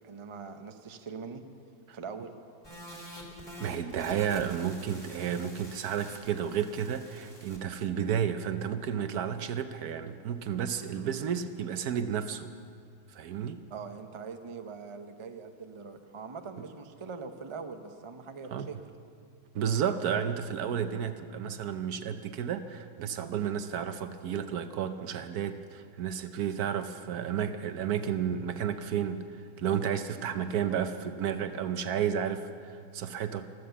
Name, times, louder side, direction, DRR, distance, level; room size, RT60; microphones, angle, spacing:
voice 1, 0.0-1.4 1.9-2.4 13.7-18.8 30.3-30.5, right 5 dB, 45° right, 7 dB, 0.4 m, -42 dB
sound 1, 2.6-7.6, equal, 15° left, 2.5 m, -47 dB
voice 2, 3.6-12.5 13.1-13.6 18.5-18.7 19.5-29.3 29.6-33.5, right 8 dB, 65° right, 10 dB, 1.2 m, -32 dB
16.0 x 13.0 x 7.0 m, 2.2 s
omnidirectional pair, 1.9 m